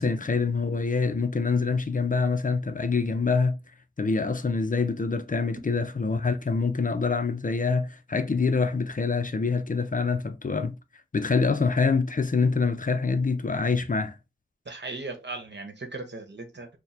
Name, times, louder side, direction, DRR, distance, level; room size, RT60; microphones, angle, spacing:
voice 1, 0.0-3.6 4.0-10.7 11.1-14.2, left 4 dB, 40° left, 0.5 m, -25 dB
voice 2, 14.6-16.7, right 3 dB, 60° right, 1.0 m, -37 dB
4.5 x 2.1 x 3.2 m
wide cardioid pair, 50°, 21 cm